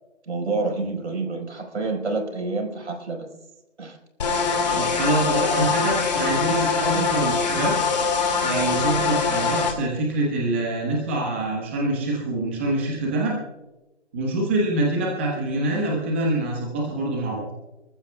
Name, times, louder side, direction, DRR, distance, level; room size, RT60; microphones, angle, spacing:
voice 1, 0.3-3.3 3.8-4.0 6.9-7.1, right 3 dB, 70° right, 4 dB, 4.6 m, -28 dB
sound 1, 4.2-9.7, left 5 dB, 35° left, 2.4 m, -23 dB
voice 2, 4.7-7.7 8.4-13.4 14.1-17.4, right 2 dB, 10° right, -2 dB, 1.1 m, -25 dB
27.5 x 14.5 x 2.3 m, 1.0 s
hypercardioid pair, 170°, 36 cm